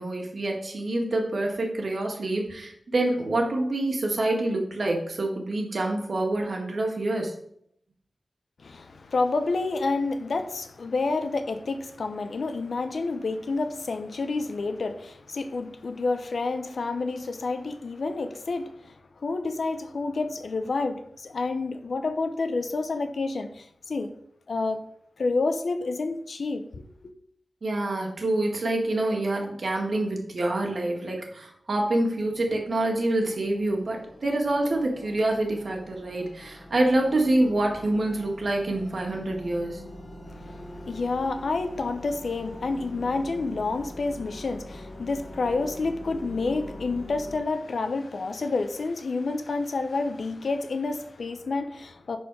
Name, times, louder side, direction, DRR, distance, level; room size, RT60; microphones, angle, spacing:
voice 1, 0.0-7.4 27.6-39.8, right 2 dB, 55° right, 1.9 m, -26 dB
voice 2, 8.6-24.1 24.5-24.8 25.2-26.8 40.2-52.2, left 3 dB, 65° left, 0.8 m, -29 dB
sound 1, 32.0-47.4, left 1 dB, 45° left, 2.6 m, -44 dB
10.5 x 4.4 x 4.9 m
wide cardioid pair, 130°, 0 cm